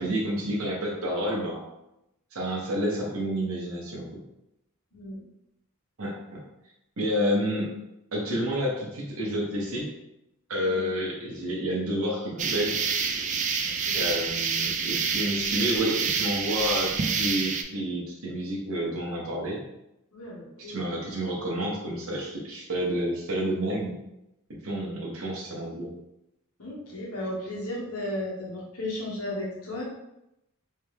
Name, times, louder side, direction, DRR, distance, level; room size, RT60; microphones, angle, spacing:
voice 1, 0.0-1.6 2.3-4.2 6.0-6.4 7.0-7.7 8.1-9.9 10.5-12.8 14.0-19.6 20.7-23.9 24.6-25.9, equal, 65° right, -3 dB, 0.9 m, -29 dB
sound 1, 12.4-17.6, right 5 dB, 35° right, 0.3 m, -28 dB
voice 2, 20.1-20.9 26.6-29.8, left 1 dB, 80° left, -4 dB, 1.3 m, -35 dB
3.3 x 3.2 x 3.3 m, 0.87 s
head